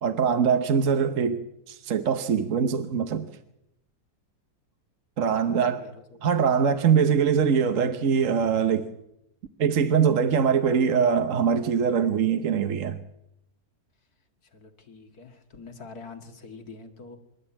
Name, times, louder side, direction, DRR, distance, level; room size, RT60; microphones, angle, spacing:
voice 1, 0.0-3.3 5.2-5.8 6.2-8.9 9.6-13.0, right 7 dB, 55° right, 1.3 m, -23 dB
voice 2, 5.4-6.2 14.4-17.2, left 4 dB, 70° left, 2.4 m, -45 dB
26.0 x 12.5 x 8.7 m
omnidirectional pair, 1.7 m